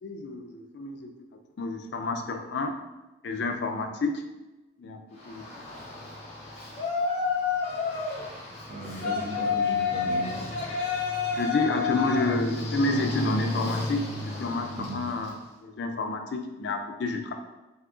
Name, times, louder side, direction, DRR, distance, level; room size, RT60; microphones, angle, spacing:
voice 1, 0.0-1.1 1.6-2.7 3.2-4.2 4.8-5.0 5.3-5.4 11.3-17.3, left 2 dB, 65° left, 5 dB, 0.3 m, -29 dB
Yell, 5.2-15.4, left 4 dB, 35° left, 0.7 m, -30 dB
voice 2, 8.7-10.6 14.8-14.9, right 1 dB, 50° right, -2 dB, 0.7 m, -37 dB
3.6 x 2.7 x 2.4 m, 1.1 s
head